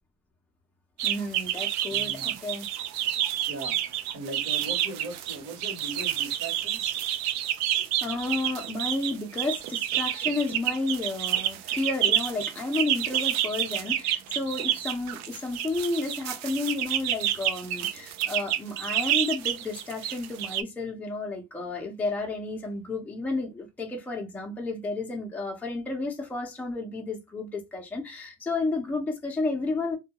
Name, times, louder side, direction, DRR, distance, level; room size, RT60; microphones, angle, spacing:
voice 1, 1.0-2.7 7.7-30.0, left 3 dB, 5° left, 0.5 m, -32 dB
sound 1, 1.0-20.6, right 11 dB, 65° right, 0.4 m, -29 dB
voice 2, 1.9-2.4 3.5-7.0 18.2-18.3, right 2 dB, 50° right, 1.1 m, -39 dB
2.2 x 2.2 x 2.8 m
cardioid pair, 130°, 29 cm